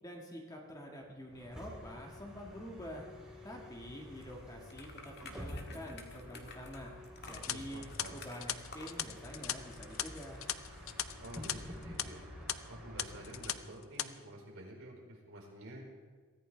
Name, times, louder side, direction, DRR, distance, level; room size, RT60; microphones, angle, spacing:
voice 1, 0.0-3.0 3.4-6.9 7.3-10.4, equal, 15° left, 0 dB, 1.7 m, -47 dB
Bus, 1.3-13.7, left 1 dB, 5° right, 3.4 m, -49 dB
sound 1, 4.0-9.1, left 3 dB, 50° left, 1.7 m, -53 dB
sound 2, 7.2-11.5 11.8-12.0 12.5-12.6 13.0-13.5 13.8-14.1, left 11 dB, 65° left, 0.6 m, -38 dB
voice 2, 7.5-8.2 11.2-12.2 12.7-15.9, right 1 dB, 70° right, -3 dB, 4.7 m, -49 dB
23.0 x 14.5 x 3.4 m, 1.5 s
head